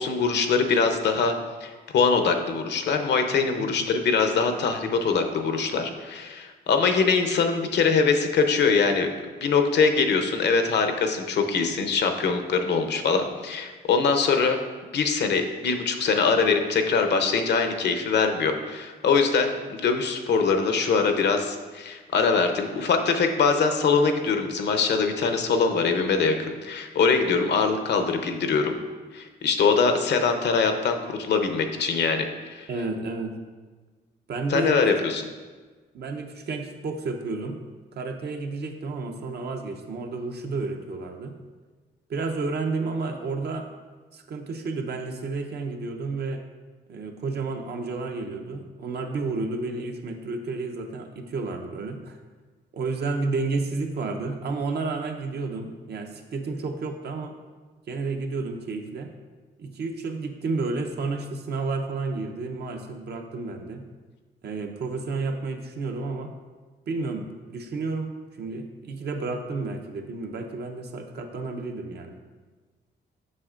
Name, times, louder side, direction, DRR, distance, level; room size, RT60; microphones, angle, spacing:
voice 1, 0.0-1.3 1.6-9.1 9.4-14.6 14.9-28.7 29.1-32.7 34.5-35.2, left 5 dB, 70° left, 6 dB, 0.7 m, -23 dB
voice 2, 32.7-33.4 34.3-34.7 35.9-37.6 38.0-41.3 42.1-43.6 44.1-46.4 46.9-52.2 52.7-57.3 57.9-59.1 59.6-63.8 64.4-66.3 66.9-68.1 68.4-72.2, right 3 dB, 65° right, 4 dB, 0.7 m, -31 dB
7.6 x 5.9 x 2.5 m, 1.4 s
cardioid pair, 100°, 18 cm